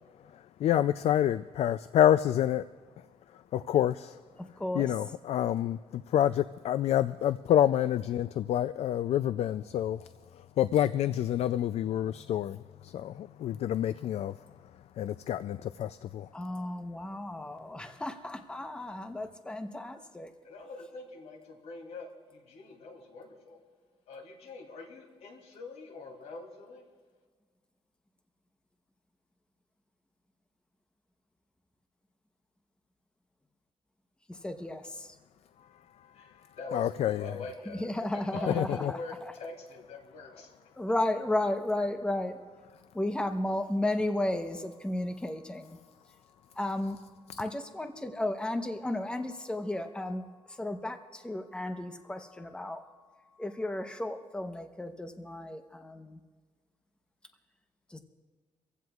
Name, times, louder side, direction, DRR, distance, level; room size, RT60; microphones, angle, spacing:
voice 1, 0.6-2.6 3.5-4.2 4.7-10.1 10.6-14.3 15.0-16.3 36.7-37.3 38.5-38.9, left 11 dB, 70° left, 14 dB, 0.4 m, -28 dB
voice 2, 4.4-4.9 16.3-20.3 34.3-35.1 37.8-39.3 40.8-42.4 42.9-45.8 46.6-47.0 47.4-52.8 53.4-56.2 57.9-58.0, left 1 dB, 10° left, 6 dB, 0.9 m, -34 dB
voice 3, 20.4-23.6 24.1-26.8 36.1-39.1 39.4-40.5, left 3 dB, 90° left, 2 dB, 2.8 m, -44 dB
24.5 x 15.5 x 2.4 m, 1.4 s
cardioid pair, 130°, 11 cm